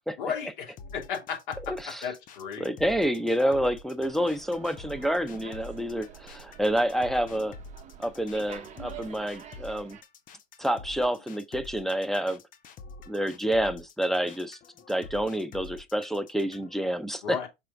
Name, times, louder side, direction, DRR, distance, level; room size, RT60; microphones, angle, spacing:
voice 1, 0.2-2.7 17.2-17.5, left 7 dB, 55° left, 2.7 m, -34 dB
sound 1, 0.8-16.8, left 3 dB, 25° left, 0.9 m, -47 dB
voice 2, 1.7-2.0 2.6-7.5 8.0-10.0 10.6-12.4 13.1-14.6 14.9-17.5, equal, ahead, 0.4 m, -28 dB
Slam, 4.0-10.0, right 8 dB, 25° right, 1.1 m, -47 dB
6.0 x 4.3 x 3.7 m
figure-of-eight pair, 95°, 31 cm